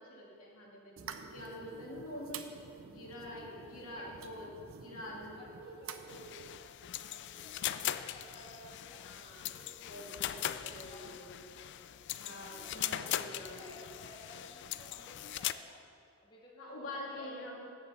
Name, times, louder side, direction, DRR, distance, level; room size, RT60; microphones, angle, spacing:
voice 1, 0.1-2.4 2.8-4.5 4.8-5.4 9.0-11.4 12.2-13.8 16.6-17.7, left 1 dB, 75° left, -4 dB, 2.6 m, -46 dB
sound 1, 1.0-6.6, right 6 dB, 65° right, 0.6 m, -49 dB
voice 2, 3.6-4.1 5.3-6.3 6.8-9.1 9.5-11.3 12.4-15.8 16.2-17.7, left 1 dB, 20° left, -3 dB, 1.2 m, -56 dB
sound 2, 6.1-15.5, left 12 dB, 55° left, 0.3 m, -40 dB
9.3 x 7.9 x 7.1 m, 2.4 s
head